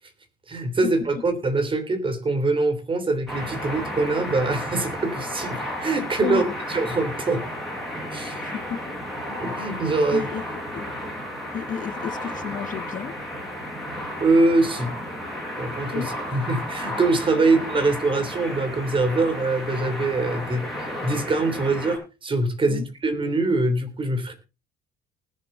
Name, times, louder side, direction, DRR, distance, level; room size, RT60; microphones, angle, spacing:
voice 1, 0.5-7.4 8.1-8.5 9.3-10.3 14.2-14.9 15.6-24.3, right 2 dB, 30° right, 3.1 m, -24 dB
sound 1, 3.3-22.0, left 1 dB, ahead, 6.9 m, -33 dB
voice 2, 6.2-6.5 8.4-8.8 10.1-10.4 10.7-10.8 11.5-13.1 15.9-16.1 22.7-22.8, left 8 dB, 50° left, 1.8 m, -31 dB
19.5 x 7.4 x 3.9 m
cardioid pair, 110°, 17 cm